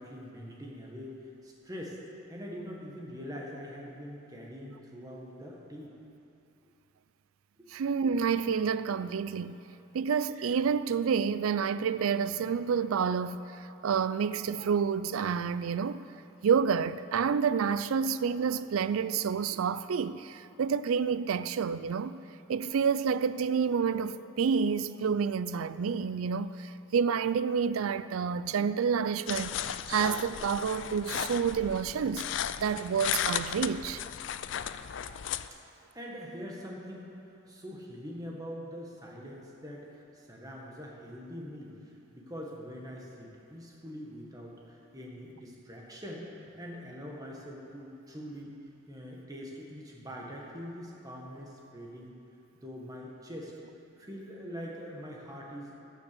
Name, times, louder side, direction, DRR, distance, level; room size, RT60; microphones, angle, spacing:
voice 1, 0.0-2.0 2.3-5.9 7.6-7.7 35.9-37.1 37.5-48.5 48.9-52.1 52.5-53.5 54.0-55.7, equal, 15° right, 1.6 m, -43 dB
voice 2, 7.7-9.6 9.9-16.0 16.4-22.2 22.5-34.0, right 6 dB, 90° right, 0.4 m, -29 dB
sound 1, 29.3-35.5, left 9 dB, 60° left, 0.4 m, -35 dB
12.0 x 7.2 x 6.8 m
head